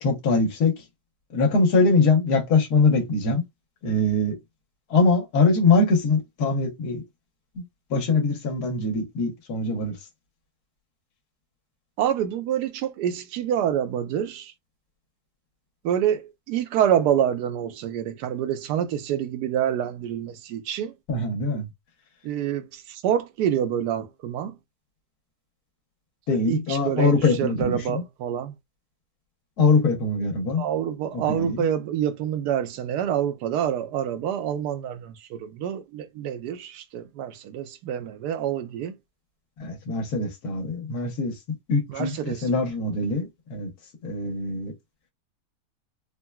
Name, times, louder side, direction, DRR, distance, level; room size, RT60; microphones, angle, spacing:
voice 1, 0.0-0.8 1.3-3.4 3.8-4.4 4.9-7.0 7.5-7.6 7.9-10.0 21.1-21.7 26.3-28.0 29.6-30.6 31.1-31.6 39.6-41.4 41.7-43.7 44.0-44.7, left 3 dB, 70° left, 1.4 m, -22 dB
voice 2, 12.0-14.5 15.8-20.9 22.2-24.6 26.5-28.5 30.6-39.0 41.9-42.4, right 10 dB, 85° right, 1.1 m, -27 dB
3.7 x 2.2 x 2.2 m
omnidirectional pair, 1.7 m